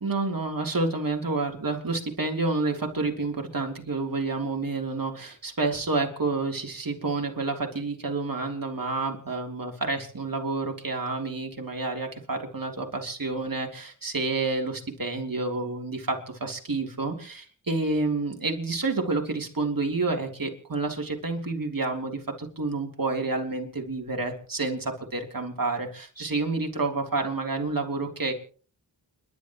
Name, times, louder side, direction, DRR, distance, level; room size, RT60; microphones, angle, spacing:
voice 1, 0.0-28.3, right 3 dB, 50° right, 2 dB, 3.3 m, -29 dB
29.5 x 11.5 x 3.1 m, 0.41 s
wide cardioid pair, 55°, 43 cm